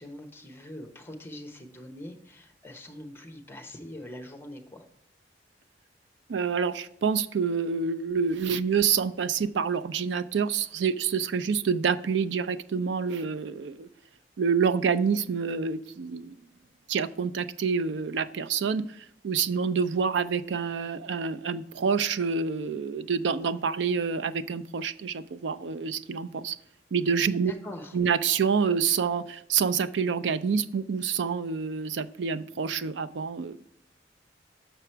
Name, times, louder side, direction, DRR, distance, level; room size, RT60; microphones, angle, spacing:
voice 1, 0.0-4.8 27.4-28.0, left 1 dB, 15° left, 1.0 m, -43 dB
voice 2, 6.3-13.9 14.4-16.4 16.9-26.6 26.9-27.5 27.9-33.6, right 6 dB, 80° right, 0.4 m, -27 dB
6.7 x 5.9 x 4.5 m
head